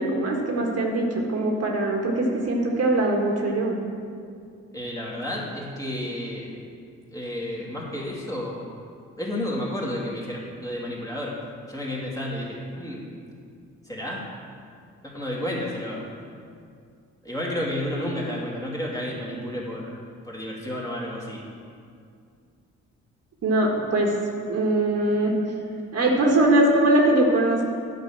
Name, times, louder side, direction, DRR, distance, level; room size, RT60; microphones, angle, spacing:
voice 1, 0.0-3.8 23.4-24.1 24.5-25.3 25.9-27.6, right 1 dB, 55° right, -1 dB, 1.5 m, -21 dB
voice 2, 4.7-6.5 7.1-8.6 9.2-11.4 11.7-13.1 13.8-14.3 15.0-16.1 17.2-20.0 20.2-21.4, left 1 dB, 10° left, -5 dB, 2.5 m, -31 dB
9.4 x 5.3 x 7.5 m, 2.3 s
cardioid pair, 90°, 30 cm